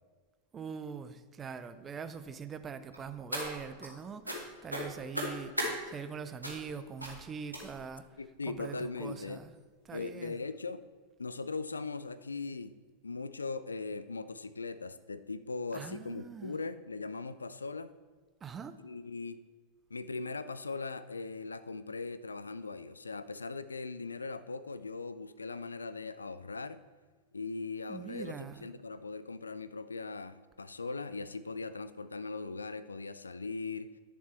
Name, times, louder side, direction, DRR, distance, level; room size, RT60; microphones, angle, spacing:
voice 1, 0.5-8.1 8.5-9.5 9.8-10.4 15.7-16.6 18.4-18.8 27.9-28.7, right 6 dB, 20° right, 11 dB, 0.6 m, -43 dB
sound 1, 2.9-3.9 4.2-4.4 4.7-5.7 6.4-6.7 7.0-7.2 7.5-7.9 8.6-8.7 9.1-9.3 9.6-9.7, equal, 85° right, 1.7 m, -37 dB
voice 2, 8.2-9.4 9.9-10.8 11.2-12.7 13.0-17.9 18.8-19.4 19.9-26.8 27.3-33.9, left 3 dB, 75° left, 14 dB, 0.4 m, -39 dB
10.0 x 7.0 x 4.4 m, 1.5 s
figure-of-eight pair, 90°, 0 cm